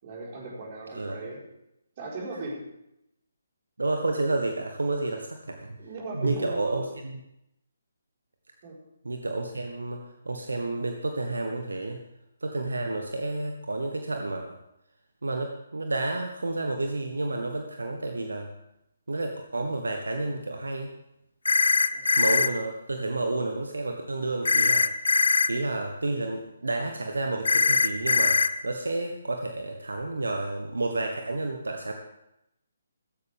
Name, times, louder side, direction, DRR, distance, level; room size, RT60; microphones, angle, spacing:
voice 1, 0.0-1.4 2.0-2.6 5.8-6.9 8.6-8.8 21.9-22.1, right 2 dB, 35° right, -3 dB, 4.7 m, -37 dB
voice 2, 0.9-1.2 3.8-5.7 6.1-7.2 9.0-12.0 12.4-14.6 15.2-18.5 19.1-20.9 22.1-24.9 25.5-31.9, right 2 dB, 70° right, 4 dB, 1.4 m, -30 dB
sound 1, 21.5-22.5 24.5-25.5 27.5-28.5, left 4 dB, 70° left, 0.6 m, -21 dB
15.5 x 15.0 x 3.6 m, 0.84 s
figure-of-eight pair, 140°, 0 cm